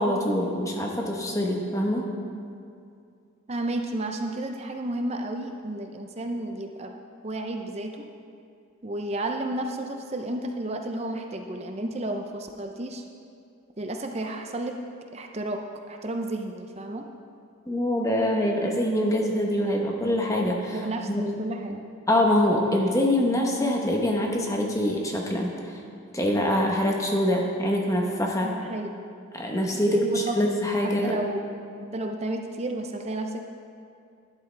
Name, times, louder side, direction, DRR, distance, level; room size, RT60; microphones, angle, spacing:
voice 1, 0.0-2.1 17.7-20.8 21.1-21.4 22.1-25.5 26.1-28.5 29.3-31.2, left 1 dB, 15° left, 0 dB, 1.0 m, -24 dB
voice 2, 3.5-7.0 7.2-8.1 8.8-13.1 13.8-14.8 15.1-15.6 15.9-17.0 20.7-21.8 28.4-28.9 29.9-30.3 31.0-31.4 31.9-33.4, right 1 dB, 30° right, 3 dB, 0.5 m, -32 dB
12.0 x 11.0 x 3.3 m, 2.4 s
head